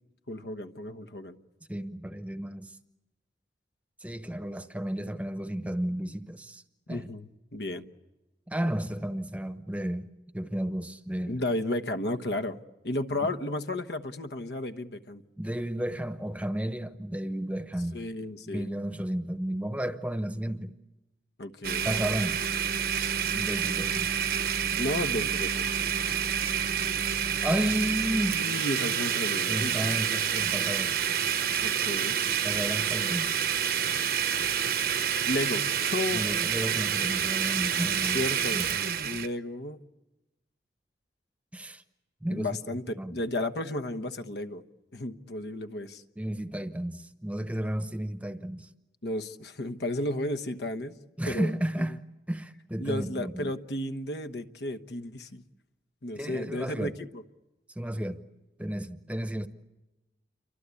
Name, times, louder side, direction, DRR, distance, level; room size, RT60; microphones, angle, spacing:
voice 1, 0.3-1.4 6.9-7.8 11.3-12.6 12.8-15.2 17.9-18.7 21.4-21.9 24.7-25.7 28.3-29.7 31.6-32.2 35.3-36.2 38.0-38.6 39.0-39.8 42.3-44.6 44.9-46.0 49.0-51.0 51.3-51.5 52.8-55.4 56.0-57.2, left 1 dB, 70° left, 1.2 m, -33 dB
voice 2, 1.7-2.8 4.0-6.6 6.9-7.1 8.5-10.1 10.3-11.4 15.4-18.0 18.5-20.7 21.8-22.4 23.3-24.1 27.4-28.4 29.5-31.0 31.6-31.8 32.4-33.3 36.1-38.6 41.5-41.8 42.2-43.1 46.2-48.7 51.2-53.5 56.1-57.0 57.7-58.2 58.6-59.5, right 1 dB, 10° right, 0.9 m, -33 dB
Domestic sounds home sounds, 21.6-39.3, right 8 dB, 55° right, 0.9 m, -28 dB
28.5 x 24.5 x 8.4 m
head